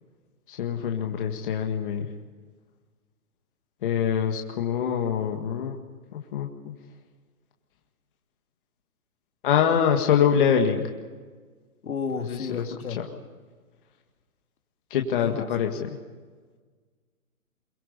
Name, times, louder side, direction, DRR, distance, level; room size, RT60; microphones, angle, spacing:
voice 1, 0.5-2.1 3.8-5.7 6.1-6.7 9.4-10.9 12.3-12.7 14.9-16.0, left 8 dB, 35° left, 2 dB, 1.8 m, -24 dB
voice 2, 11.8-13.0 15.2-15.5, left 5 dB, 75° left, 4 dB, 2.9 m, -32 dB
25.5 x 23.0 x 5.4 m, 1.5 s
hypercardioid pair, 160°, 44 cm